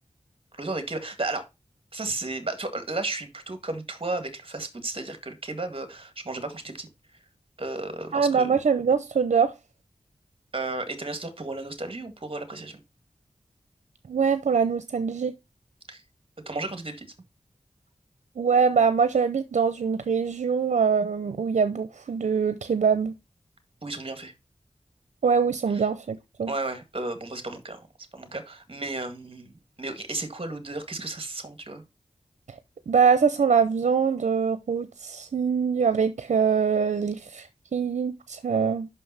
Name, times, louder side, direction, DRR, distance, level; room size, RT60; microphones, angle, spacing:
voice 1, 0.5-1.5 1.9-7.2 7.6-8.5 10.5-12.8 15.9-16.0 16.5-17.1 23.8-24.3 25.7-25.9 26.5-27.9 28.1-31.8, right 2 dB, 45° right, 1.9 m, -34 dB
voice 2, 8.1-9.5 14.1-15.3 18.4-23.1 25.2-26.5 32.9-38.9, right 6 dB, 85° right, 0.7 m, -23 dB
6.0 x 5.4 x 5.6 m
cardioid pair, 45°, 12 cm